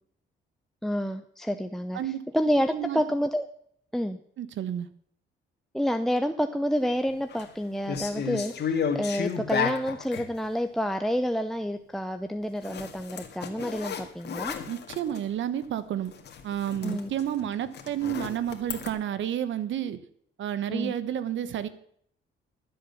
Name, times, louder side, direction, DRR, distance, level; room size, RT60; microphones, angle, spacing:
voice 1, 0.8-3.5 3.9-4.2 5.7-14.6 16.8-17.1 20.7-20.9, equal, ahead, 7 dB, 0.7 m, -29 dB
voice 2, 2.7-3.0 4.4-4.9 14.7-16.1 16.4-20.0 20.4-21.7, right 10 dB, 70° right, 14 dB, 1.2 m, -30 dB
sound 1, 7.1-7.5 7.8-10.3 12.6-15.2 15.6-15.8 16.1-18.9, left 6 dB, 60° left, 1.9 m, -33 dB
12.5 x 7.8 x 7.0 m, 0.65 s
cardioid pair, 90°, 20 cm